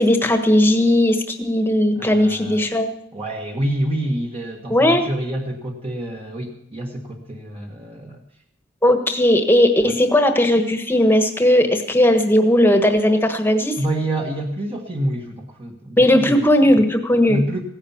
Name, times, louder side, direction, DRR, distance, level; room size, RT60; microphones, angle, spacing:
voice 1, 0.0-2.9 4.7-5.1 8.8-13.8 16.0-17.4, left 1 dB, 10° left, 6 dB, 1.4 m, -17 dB
voice 2, 1.9-2.6 3.1-8.2 9.8-9.9 13.8-16.4 17.3-17.6, right 1 dB, 30° right, 0 dB, 1.6 m, -27 dB
17.0 x 10.0 x 7.2 m, 0.70 s
head